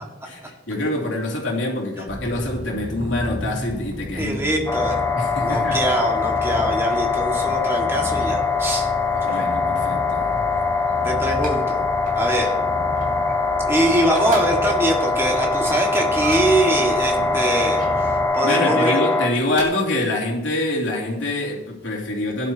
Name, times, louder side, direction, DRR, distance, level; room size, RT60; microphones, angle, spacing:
voice 1, 0.2-4.7 5.2-5.8 9.1-10.5 18.4-22.5, left 2 dB, 80° left, -2 dB, 3.0 m, -25 dB
Purr, 2.1-18.2, equal, 60° right, 2.0 m, -34 dB
voice 2, 4.2-5.0 5.4-8.9 9.3-9.4 11.0-11.8 12.2-12.6 13.7-19.0, right 1 dB, 15° right, -1 dB, 2.0 m, -23 dB
sound 1, 4.7-19.3, left 4 dB, 15° left, 0.9 m, -22 dB
sound 2, 8.2-9.6 10.2-11.7 12.0-12.3 12.6-13.7 14.0-16.7 17.4-18.2 19.0-19.6, right 3 dB, 45° right, 3.4 m, -38 dB
16.5 x 11.0 x 3.0 m, 1.0 s
head